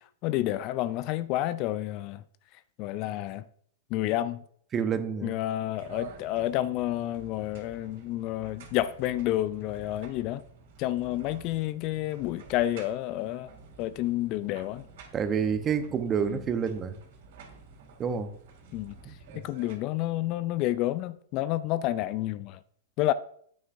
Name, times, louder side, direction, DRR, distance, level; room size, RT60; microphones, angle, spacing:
voice 1, 0.2-2.2 2.8-3.4 3.9-4.4 5.2-10.4 10.8-13.5 13.8-14.8 16.2-16.4 18.7-18.9 19.4-22.6 23.0-23.1, left 14 dB, 40° left, 0.4 m, -29 dB
voice 2, 4.7-5.3 15.1-17.0 18.0-18.3 19.3-19.4, right 7 dB, 25° right, 0.9 m, -28 dB
sound 1, 5.7-19.7, right 4 dB, 55° right, 2.6 m, -50 dB
9.5 x 8.7 x 2.6 m
hypercardioid pair, 105°, 0 cm